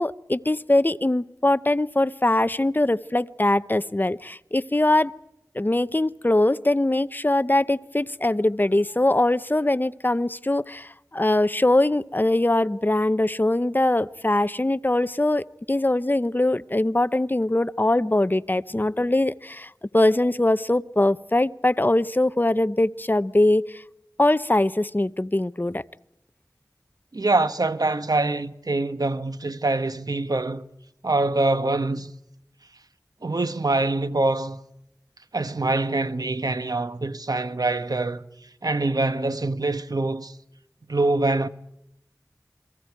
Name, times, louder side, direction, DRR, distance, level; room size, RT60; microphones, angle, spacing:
voice 1, 0.0-5.1 5.5-23.8 24.2-25.8, left 1 dB, 30° left, 0.8 m, -22 dB
voice 2, 27.1-30.7 31.0-32.1 33.2-34.6 35.3-38.2 38.6-40.4 40.9-41.5, right 2 dB, 70° right, 1.1 m, -24 dB
30.0 x 22.5 x 4.7 m
wide cardioid pair, 45°, 7 cm